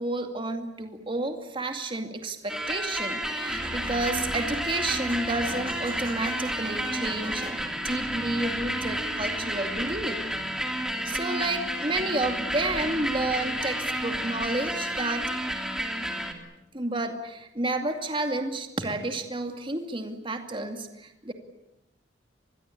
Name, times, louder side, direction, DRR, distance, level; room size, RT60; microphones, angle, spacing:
voice 1, 0.0-10.2 11.0-15.3 16.7-21.3, right 2 dB, 30° right, 5 dB, 2.3 m, -31 dB
sound 1, 2.5-16.3, equal, 5° right, 2.9 m, -31 dB
25.5 x 21.5 x 8.6 m, 0.88 s
head